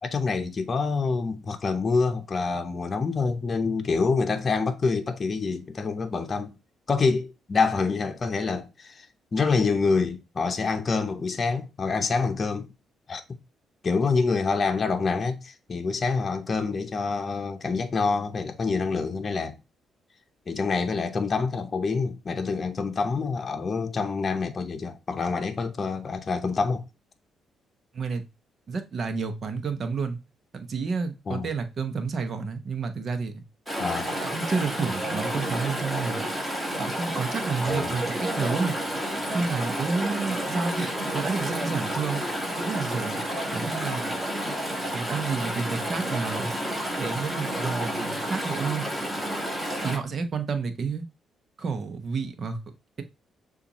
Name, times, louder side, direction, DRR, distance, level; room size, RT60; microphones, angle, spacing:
voice 1, 0.0-6.6 6.9-9.1 9.3-12.7 13.1-13.4 13.8-19.6 20.5-26.8 31.3-31.5 33.8-34.1 37.7-38.0, left 4 dB, 40° left, 0.8 m, -26 dB
voice 2, 28.7-30.2 30.5-33.4 34.2-36.2 36.8-38.8 39.3-42.2 42.6-43.2 43.5-44.1 44.9-46.5 47.0-48.8 49.8-51.0 51.6-52.6, right 4 dB, 50° right, 0.9 m, -30 dB
Chatter / Stream, 33.7-50.0, right 1 dB, 10° right, 2.1 m, -30 dB
6.6 x 2.5 x 3.0 m
cardioid pair, 90°, 0 cm